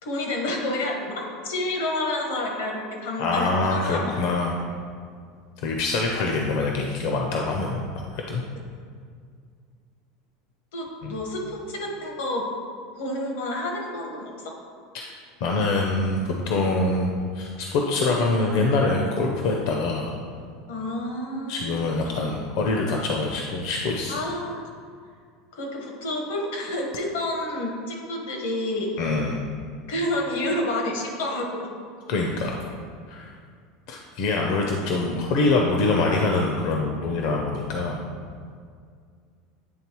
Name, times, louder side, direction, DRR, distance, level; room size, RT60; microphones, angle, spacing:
voice 1, 0.0-4.1 10.7-12.4 13.0-14.3 20.7-22.0 24.1-24.7 25.5-28.9 29.9-31.7, left 1 dB, 85° left, 1 dB, 1.2 m, -29 dB
voice 2, 3.2-4.6 5.6-8.4 11.0-11.1 14.9-15.1 15.4-20.1 21.5-24.2 29.0-29.4 32.1-32.6 33.1-33.3 33.9-38.0, left 3 dB, 55° left, 1 dB, 0.5 m, -24 dB
8.6 x 3.6 x 3.0 m, 2.1 s
supercardioid pair, 175°, 0 cm